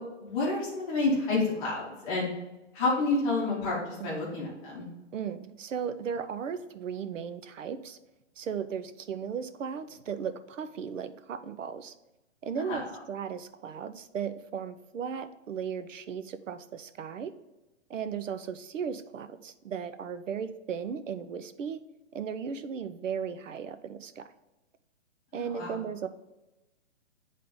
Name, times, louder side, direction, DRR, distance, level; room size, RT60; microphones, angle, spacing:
voice 1, 0.2-2.3 2.7-4.9 12.6-12.8 25.3-25.8, left 3 dB, 10° left, -6 dB, 0.8 m, -29 dB
voice 2, 5.1-8.0 8.4-11.9 12.4-17.3 17.9-21.8 22.1-24.2 25.3-26.1, right 7 dB, 85° right, 11 dB, 0.7 m, -36 dB
8.5 x 3.6 x 3.7 m, 1.0 s
hypercardioid pair, 170°, 37 cm